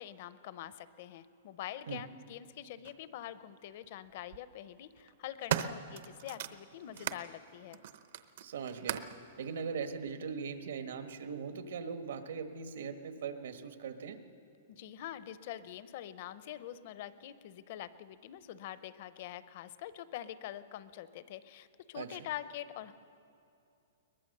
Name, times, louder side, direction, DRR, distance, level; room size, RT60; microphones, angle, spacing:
voice 1, 0.0-7.8 14.7-22.9, left 12 dB, 40° left, 15 dB, 0.7 m, -45 dB
sound 1, 2.8-3.0 4.1-4.4 5.0-7.3 7.7-9.2 10.1-10.2, right 10 dB, 50° right, 0.8 m, -38 dB
voice 2, 8.4-9.0 9.4-14.2 21.9-22.2, right 6 dB, 70° right, 8 dB, 1.4 m, -40 dB
22.5 x 19.5 x 6.7 m, 2.7 s
hypercardioid pair, 175°, 0 cm